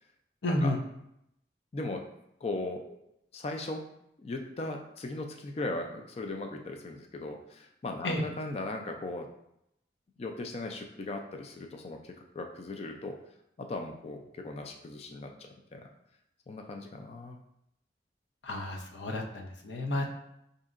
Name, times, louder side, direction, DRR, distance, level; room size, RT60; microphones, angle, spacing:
voice 1, 0.4-0.8 8.0-8.2 18.4-20.1, left 1 dB, 85° left, 2 dB, 0.6 m, -31 dB
voice 2, 1.7-2.0 2.4-3.0 3.3-3.8 4.2-9.3 10.2-13.2 13.6-15.9 16.5-17.4 20.0-20.1, left 2 dB, 35° left, 4 dB, 0.3 m, -38 dB
5.1 x 2.7 x 2.4 m, 0.79 s
head